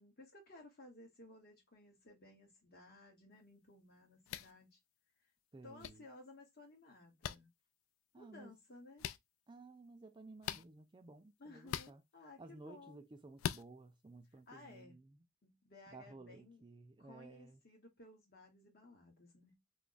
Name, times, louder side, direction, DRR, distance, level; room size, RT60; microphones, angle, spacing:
voice 1, 0.0-4.8 5.6-7.5 8.2-9.0 11.4-13.0 14.5-15.0 15.4-16.6 17.0-19.6, left 2 dB, 50° left, 1.3 m, -58 dB
sound 1, 4.3-4.5 5.8-5.9 7.2-7.4 9.0-9.2 10.4-10.7 11.7-11.9 13.4-13.6, left 10 dB, 75° left, 0.3 m, -40 dB
voice 2, 5.5-6.1 8.1-8.5 9.5-12.0 12.4-15.3 15.9-17.6, right 3 dB, 25° right, 0.4 m, -56 dB
3.4 x 2.1 x 3.8 m
head